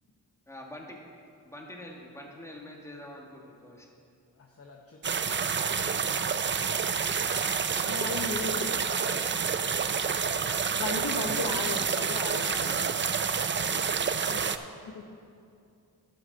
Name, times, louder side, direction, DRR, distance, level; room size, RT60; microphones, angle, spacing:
voice 1, 0.5-1.0 1.4-3.9, left 1 dB, 10° left, -1 dB, 1.7 m, -45 dB
voice 2, 4.3-6.3 7.4-9.6 13.5-13.9, left 4 dB, 40° left, 1 dB, 0.9 m, -49 dB
sound 1, 5.0-14.6, right 6 dB, 30° right, 0.4 m, -28 dB
voice 3, 7.8-8.7 10.8-12.9 13.7-13.9 14.2-14.4 14.8-15.1, left 3 dB, 65° left, 3 dB, 1.0 m, -35 dB
12.0 x 7.9 x 4.1 m, 2.5 s
cardioid pair, 65°, 37 cm